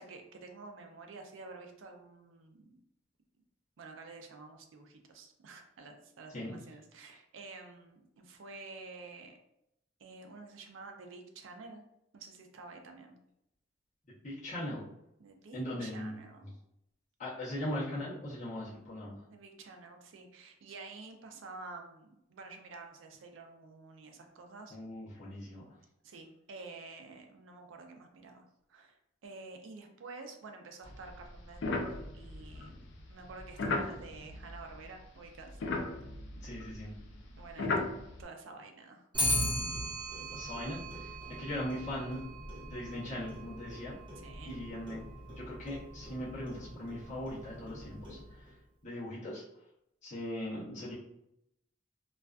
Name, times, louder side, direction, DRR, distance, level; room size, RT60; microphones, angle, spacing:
voice 1, 0.0-2.8 3.8-9.4 10.0-11.8 12.1-13.2 15.2-16.5 19.3-24.8 26.0-35.9 37.4-39.1 41.3-41.6 44.2-44.6, right 3 dB, 90° right, 4 dB, 0.4 m, -50 dB
voice 2, 14.2-14.8 15.5-16.1 17.2-19.2 24.7-25.6 36.4-36.9 40.3-42.2 42.6-44.0 44.4-45.0 45.4-48.5 48.8-49.4 50.0-50.9, left 1 dB, 40° left, -10 dB, 0.7 m, -39 dB
sound 1, 30.8-35.1 35.3-38.2, left 2 dB, 65° left, 0.4 m, -37 dB
Clock, 39.1-48.5, equal, 25° right, 0.8 m, -38 dB
2.4 x 2.3 x 2.3 m, 0.82 s
head